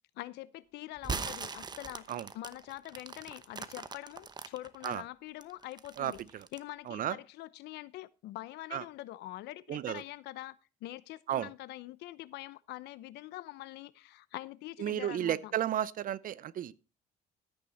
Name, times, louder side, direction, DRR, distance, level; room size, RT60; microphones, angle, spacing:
voice 1, 0.2-6.2 6.5-15.5, left 16 dB, 85° left, 0.9 m, -44 dB
sound 1, 1.0-4.9 5.4-6.7, right 4 dB, 25° right, 0.9 m, -40 dB
voice 2, 6.0-6.5 6.9-7.2 8.7-8.8 9.7-10.0 11.3-11.5 14.8-16.7, right 11 dB, 55° right, 0.7 m, -33 dB
13.5 x 8.8 x 4.3 m
cardioid pair, 110°, 17 cm